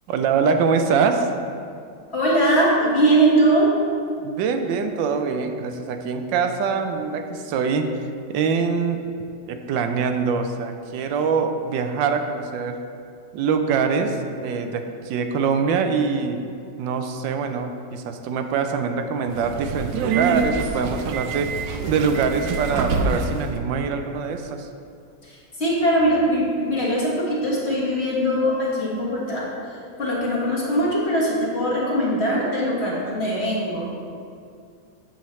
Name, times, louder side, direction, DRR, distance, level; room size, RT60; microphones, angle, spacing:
voice 1, 0.1-1.3 4.2-7.9 8.3-9.0 9.5-12.8 13.3-16.4 16.8-21.6 21.9-24.7, right 5 dB, 85° right, 6 dB, 1.3 m, -24 dB
voice 2, 2.1-3.7 25.2-34.1, right 1 dB, 40° left, -6 dB, 1.6 m, -21 dB
Subway metro underground, 19.3-23.5, right 4 dB, 70° right, 1.1 m, -26 dB
8.6 x 7.1 x 3.1 m, 2.3 s
omnidirectional pair, 2.0 m